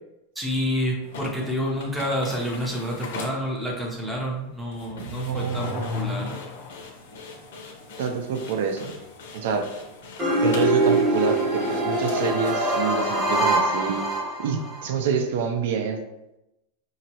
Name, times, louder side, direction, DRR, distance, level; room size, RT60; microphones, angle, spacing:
voice 1, 0.4-6.3, equal, 5° right, -2 dB, 0.7 m, -28 dB
sound 1, 1.0-12.5, left 3 dB, 75° left, 0.9 m, -42 dB
Car / Accelerating revving vroom, 4.8-7.0, left 4 dB, 55° left, 0.6 m, -34 dB
voice 2, 4.9-6.1 8.0-8.9 9.3-9.6 10.4-14.1 14.4-16.0, right 6 dB, 65° right, 5 dB, 0.6 m, -27 dB
sound 2, 10.2-14.8, right 1 dB, 20° right, 1.0 m, -23 dB
5.1 x 2.9 x 2.9 m, 0.93 s
supercardioid pair, 165°, 0 cm